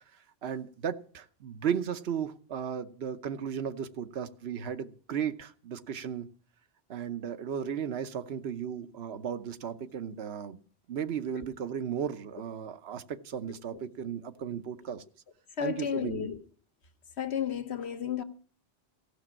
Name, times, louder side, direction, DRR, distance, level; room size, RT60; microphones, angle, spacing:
voice 1, 0.4-6.3 6.9-10.6 10.9-15.0 15.6-16.3, right 8 dB, 80° right, 1.1 m, -35 dB
voice 2, 15.6-16.4 17.2-18.2, left 8 dB, 85° left, 1.4 m, -32 dB
15.0 x 6.0 x 8.6 m
omnidirectional pair, 1.1 m